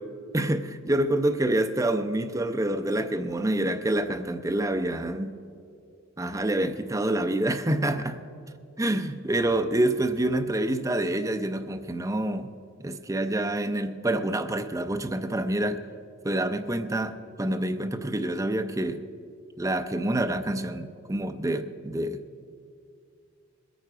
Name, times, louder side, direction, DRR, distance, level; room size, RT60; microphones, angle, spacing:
voice 1, 0.3-5.3 6.2-8.2 8.8-12.5 12.8-15.8 16.2-19.1 19.6-22.2, right 1 dB, 15° right, 8 dB, 0.5 m, -27 dB
20.5 x 9.1 x 4.9 m, 2.4 s
head